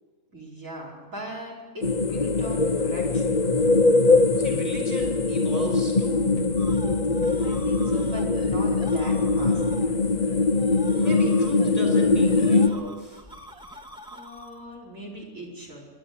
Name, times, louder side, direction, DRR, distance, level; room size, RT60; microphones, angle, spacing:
voice 1, 0.3-3.4 6.9-10.0 14.1-15.8, right 1 dB, 60° right, -3 dB, 5.3 m, -40 dB
sound 1, 1.8-12.7, left 3 dB, 35° left, 1.0 m, -22 dB
voice 2, 4.4-6.2 10.9-13.2, left 1 dB, 25° right, 1 dB, 5.5 m, -35 dB
sound 2, 6.4-12.4, right 2 dB, 80° left, 1.8 m, -43 dB
sound 3, 6.5-14.8, equal, 5° right, 1.7 m, -45 dB
28.0 x 12.0 x 9.7 m, 1.5 s
omnidirectional pair, 1.5 m